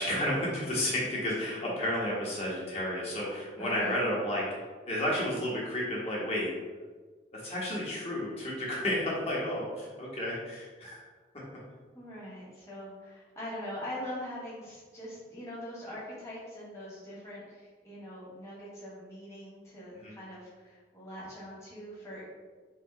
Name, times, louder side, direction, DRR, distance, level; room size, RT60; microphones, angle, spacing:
voice 1, 0.0-4.4 4.8-6.5 7.3-11.0 20.0-20.1, left 1 dB, 35° left, -5 dB, 1.3 m, -32 dB
voice 2, 3.6-4.0 11.9-22.3, equal, 15° left, -8 dB, 1.3 m, -42 dB
3.7 x 2.8 x 4.6 m, 1.4 s
head